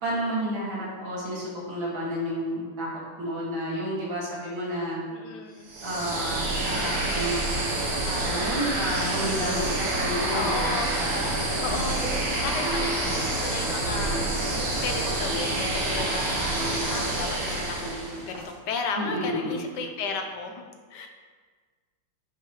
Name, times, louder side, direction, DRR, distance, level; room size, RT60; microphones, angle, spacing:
voice 1, 0.0-2.9 3.2-5.0 5.8-7.4 8.0-11.3 19.0-19.6, equal, 60° right, -7 dB, 2.5 m, -31 dB
voice 2, 5.1-5.7 10.3-10.9 11.3-12.0 12.4-14.4 14.8-20.6 20.9-21.1, left 4 dB, 65° left, 4 dB, 1.2 m, -34 dB
sound 1, 5.7-18.3, right 2 dB, 85° right, 2.3 m, -28 dB
sound 2, 11.7-18.5, right 1 dB, 45° right, 1.5 m, -39 dB
9.7 x 5.9 x 3.1 m, 1.5 s
omnidirectional pair, 2.4 m